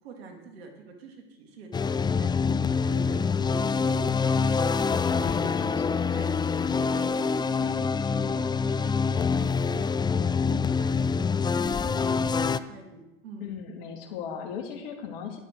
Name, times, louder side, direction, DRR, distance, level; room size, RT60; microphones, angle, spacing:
voice 1, 0.0-2.3 2.6-4.8 5.1-6.3 6.6-13.5, right 4 dB, 80° right, 3 dB, 2.7 m, -45 dB
sound 1, 1.7-12.6, left 5 dB, 15° left, 0.4 m, -25 dB
voice 2, 5.2-6.0 13.4-15.4, left 7 dB, 70° left, 3 dB, 2.5 m, -38 dB
11.5 x 11.0 x 4.7 m, 0.98 s
hypercardioid pair, 85°, 30 cm